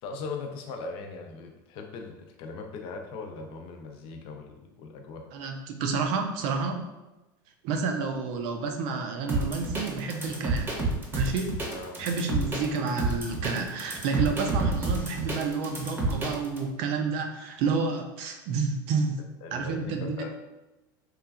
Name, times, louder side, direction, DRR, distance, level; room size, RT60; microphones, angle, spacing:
voice 1, 0.0-5.2 11.7-12.0 19.4-20.3, left 4 dB, 50° left, 3 dB, 0.5 m, -39 dB
voice 2, 5.3-6.9 7.6-10.7 11.1-11.6 12.0-19.2 19.5-20.3, right 4 dB, 60° right, 4 dB, 0.4 m, -30 dB
sound 1, 9.3-16.6, right 2 dB, 20° right, 0.7 m, -29 dB
3.0 x 2.3 x 2.3 m, 1.0 s
hypercardioid pair, 100°, 12 cm